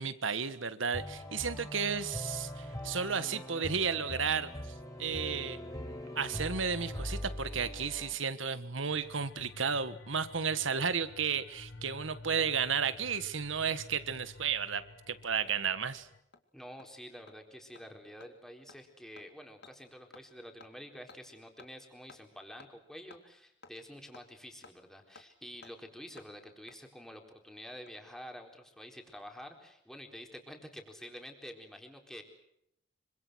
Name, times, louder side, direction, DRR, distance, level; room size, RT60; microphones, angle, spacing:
voice 1, 0.0-4.5 5.0-5.6 6.1-16.1, right 6 dB, 80° right, 13 dB, 1.5 m, -33 dB
sound 1, 0.9-8.1, left 1 dB, 20° left, 4.6 m, -41 dB
sound 2, 8.9-16.2, left 3 dB, 80° left, 1.5 m, -52 dB
Hammer, 14.9-15.0 15.4-15.5 15.8-15.9 16.3-16.4 16.8-16.9 17.3-17.4 17.8-17.9 18.2-18.3 18.7-18.8 19.2-19.3 19.6-19.7 20.1-20.3 20.6-20.7 21.1-21.2 21.6-21.7 22.1-22.2 22.6-22.7 23.1-23.2 23.6-23.7 24.1-24.3 24.6-24.7 25.2-25.3 25.6-25.7 26.2-26.3 26.7-26.8 27.7-28.1 28.3-28.4, left 4 dB, 60° left, 2.3 m, -55 dB
voice 2, 16.5-32.2, equal, 5° left, 3 dB, 4.2 m, -49 dB
26.0 x 25.0 x 6.3 m, 0.78 s
head